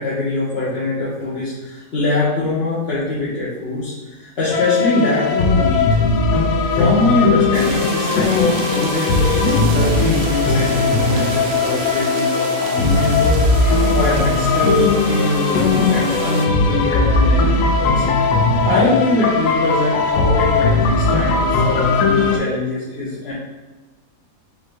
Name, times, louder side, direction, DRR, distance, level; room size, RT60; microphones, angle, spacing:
voice 1, 0.0-5.9 6.7-13.4 13.9-18.4 18.6-23.3, left 2 dB, 45° left, -9 dB, 1.2 m, -22 dB
sound 1, 4.5-22.4, left 3 dB, 85° left, 1.1 m, -18 dB
sound 2, 7.5-16.5, right 4 dB, 75° right, 1.1 m, -29 dB
5.1 x 2.8 x 3.6 m, 1.2 s
omnidirectional pair, 1.7 m